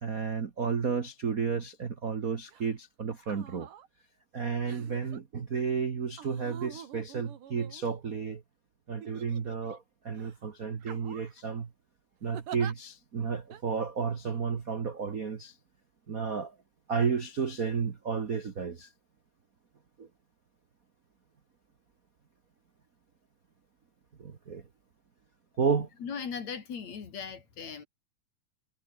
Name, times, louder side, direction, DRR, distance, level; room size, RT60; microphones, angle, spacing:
voice 1, 0.0-3.7 4.3-8.4 8.9-11.7 12.2-15.6 16.1-16.5 16.9-18.9 20.0-20.1 24.2-24.6 25.6-25.9, right 6 dB, 55° right, 0.9 m, -32 dB
sound 1, 2.5-2.7 3.2-3.9 4.7-5.2 6.2-8.2 9.0-9.8 10.2-10.4 10.8-11.4 12.3-12.7 13.5-13.6, right 9 dB, 70° right, 3.5 m, -46 dB
voice 2, 26.0-27.8, left 6 dB, 55° left, 4.1 m, -38 dB
omnidirectional pair, 3.9 m